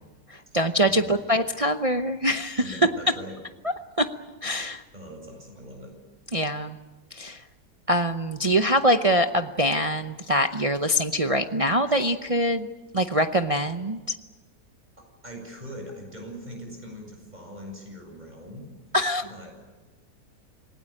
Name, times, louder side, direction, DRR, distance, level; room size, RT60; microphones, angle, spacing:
voice 1, 0.3-2.8 4.0-4.1 4.4-4.8 6.3-6.7 7.1-7.4 7.9-12.7 12.9-14.1 18.9-19.2, equal, 45° right, 7 dB, 0.4 m, -24 dB
voice 2, 0.9-1.2 2.6-3.4 4.9-6.0 15.0-18.7 19.2-19.5, equal, 25° right, 2 dB, 7.7 m, -41 dB
27.0 x 18.5 x 8.6 m, 1.2 s
omnidirectional pair, 1.8 m